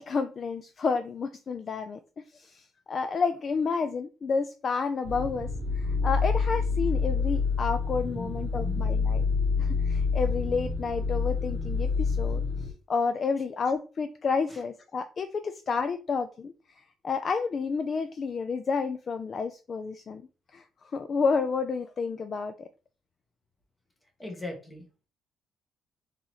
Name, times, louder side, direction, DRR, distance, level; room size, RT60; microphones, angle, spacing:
voice 1, 0.0-5.5 5.7-9.2 9.6-12.4 12.9-20.2 20.5-22.7, left 5 dB, 35° left, 0.4 m, -30 dB
sound 1, 5.0-12.7, left 4 dB, 40° right, 1.2 m, -27 dB
voice 2, 8.1-8.9 14.5-14.6 24.2-24.8, left 2 dB, 10° left, 1.3 m, -39 dB
4.1 x 3.9 x 3.0 m
cardioid pair, 145°, 0 cm